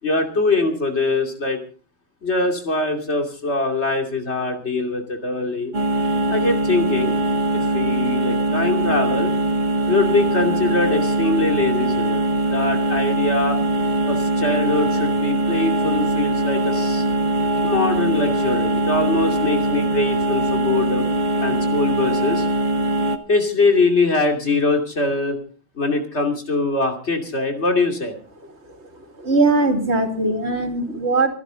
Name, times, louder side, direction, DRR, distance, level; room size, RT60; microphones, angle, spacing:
voice 1, 0.0-1.6 2.2-5.7 6.3-7.1 7.5-9.3 9.9-12.2 12.5-13.6 14.0-17.0 17.6-21.1 21.4-22.5 23.3-25.4 25.8-28.2, left 3 dB, 85° left, 4 dB, 3.0 m, -22 dB
sound 1, 5.7-23.2, right 1 dB, 45° right, 1.4 m, -21 dB
voice 2, 29.2-31.3, right 3 dB, 80° right, 4 dB, 3.0 m, -20 dB
25.0 x 11.0 x 3.8 m, 0.36 s
omnidirectional pair, 1.1 m